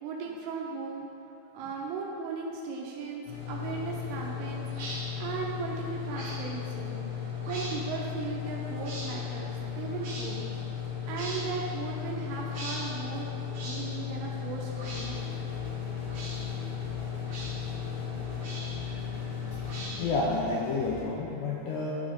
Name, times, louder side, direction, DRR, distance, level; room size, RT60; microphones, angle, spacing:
voice 1, 0.0-1.1 1.5-10.4 11.1-13.3 13.7-15.2, right 5 dB, 85° right, -2 dB, 3.2 m, -37 dB
sound 1, 3.3-19.8, left 8 dB, 45° left, 2.1 m, -36 dB
sound 2, 4.7-5.0 6.1-6.4 7.4-7.7 8.8-9.1 10.0-10.3 11.1-11.4 12.5-12.8 13.5-13.8 14.7-15.1 16.1-16.4 17.3-17.5 18.4-18.8 19.6-20.2, right 2 dB, 55° right, 2.3 m, -40 dB
sound 3, 14.8-21.0, left 3 dB, 60° left, 2.3 m, -44 dB
voice 2, 19.5-22.0, left 3 dB, 80° left, -3 dB, 2.5 m, -30 dB
12.5 x 5.0 x 3.9 m, 2.8 s
omnidirectional pair, 5.6 m